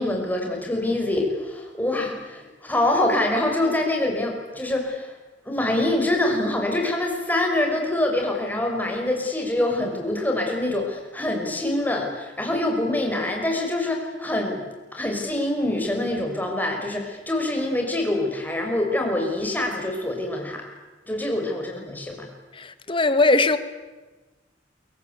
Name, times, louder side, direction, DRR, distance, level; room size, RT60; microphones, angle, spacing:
voice 1, 0.0-5.1 5.5-14.6 14.9-20.6 21.1-22.3, left 1 dB, 10° left, 5.7 m, -25 dB
voice 2, 22.5-23.6, left 2 dB, 25° left, 1.6 m, -20 dB
29.0 x 24.0 x 8.3 m
head